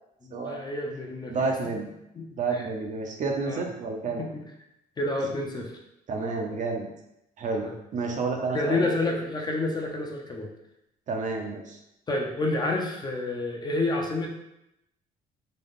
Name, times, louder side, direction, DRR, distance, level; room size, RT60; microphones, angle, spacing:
voice 1, 0.2-1.5 2.1-2.7 3.5-3.6 4.2-4.4 5.0-5.8 7.6-7.8 8.5-10.5 12.1-14.3, left 2 dB, 25° left, 0 dB, 0.6 m, -29 dB
voice 2, 1.3-1.9 2.4-4.2 6.1-6.9 7.4-7.7 7.9-8.9 11.1-11.8, right 4 dB, 45° right, 2 dB, 0.6 m, -30 dB
3.9 x 2.3 x 3.6 m, 0.85 s
cardioid pair, 110°, 17 cm